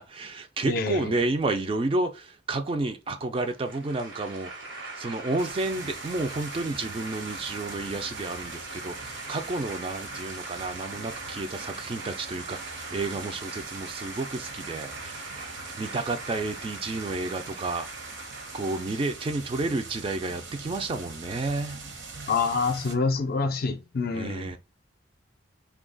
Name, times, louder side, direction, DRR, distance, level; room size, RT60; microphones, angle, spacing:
voice 1, 0.0-4.5 5.0-17.9 18.5-21.8 24.1-24.6, right 2 dB, 30° right, 0.3 m, -31 dB
voice 2, 0.6-1.1 22.3-24.6, left 4 dB, 50° left, 0.4 m, -27 dB
sound 1, 3.3-19.4, right 2 dB, 85° right, 1.1 m, -41 dB
sound 2, 5.4-22.9, right 4 dB, 65° right, 0.8 m, -43 dB
2.7 x 2.3 x 3.7 m
head